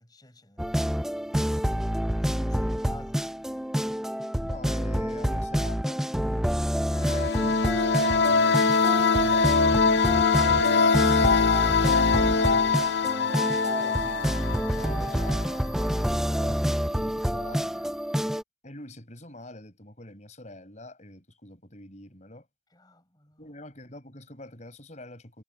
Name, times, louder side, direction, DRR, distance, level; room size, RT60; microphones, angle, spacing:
voice 1, 0.0-3.3 22.7-23.5, left 1 dB, 25° left, 6.6 m, -53 dB
sound 1, 0.6-18.4, equal, 5° right, 0.6 m, -28 dB
voice 2, 4.4-6.0 7.0-9.7 10.4-14.6 14.9-17.8 18.6-22.5 23.4-25.4, left 1 dB, 40° left, 5.6 m, -45 dB
sound 2, 6.9-15.5, left 5 dB, 75° left, 0.6 m, -23 dB
head